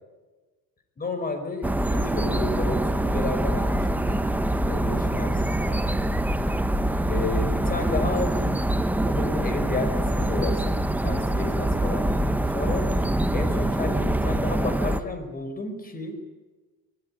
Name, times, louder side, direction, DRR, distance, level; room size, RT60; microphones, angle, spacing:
voice 1, 1.0-4.3 4.7-6.1 7.1-8.6 9.1-12.9 13.3-16.2, left 3 dB, 25° left, 8 dB, 5.3 m, -32 dB
sound 1, 1.6-15.0, right 1 dB, 5° right, 1.0 m, -24 dB
24.5 x 20.0 x 9.9 m, 1.3 s
cardioid pair, 135°, 36 cm